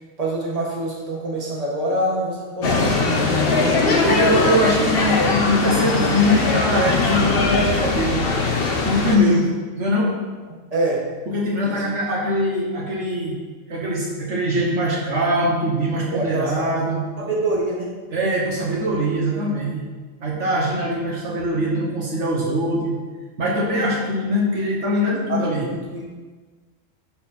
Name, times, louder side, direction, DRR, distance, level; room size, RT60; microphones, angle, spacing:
voice 1, 0.2-3.9 9.1-9.5 10.5-11.0 11.6-11.8 16.1-16.6 17.2-17.9 25.3-26.1, right 1 dB, 30° right, -4 dB, 1.7 m, -26 dB
sound 1, 2.6-9.2, left 3 dB, 50° left, 1.1 m, -20 dB
voice 2, 4.0-8.2 8.8-9.5 9.7-10.2 11.3-13.4 13.7-17.0 18.1-19.9 20.2-23.0 23.4-25.7, equal, 70° right, -3 dB, 1.6 m, -22 dB
11.5 x 4.3 x 4.3 m, 1.3 s
omnidirectional pair, 1.3 m